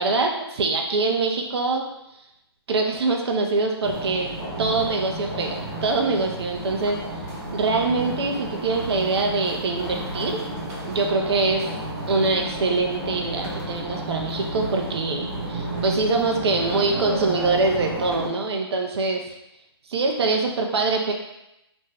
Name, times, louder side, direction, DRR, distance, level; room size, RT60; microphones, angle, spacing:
voice 1, 0.0-1.9 2.7-4.3 4.6-7.0 7.5-10.4 10.8-11.7 12.1-19.3 19.9-21.1, right 3 dB, 70° right, 2 dB, 0.5 m, -24 dB
sound 1, 3.8-18.3, right 1 dB, 40° right, 1.0 m, -32 dB
2.5 x 2.1 x 3.3 m, 0.87 s
hypercardioid pair, 135°, 14 cm